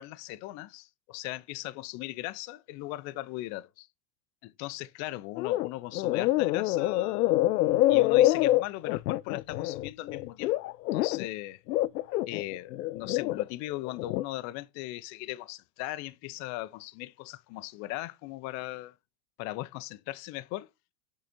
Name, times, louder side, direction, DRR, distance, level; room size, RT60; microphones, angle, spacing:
voice 1, 0.0-3.9 4.4-7.3 7.9-10.5 10.9-11.6 12.3-18.9 19.4-20.7, left 17 dB, 35° left, 0.6 m, -38 dB
sound 1, 5.4-5.7 5.9-11.3 11.7-13.4 13.9-14.2, left 15 dB, 85° left, 0.5 m, -26 dB
6.6 x 5.0 x 4.2 m
hypercardioid pair, 125°, 48 cm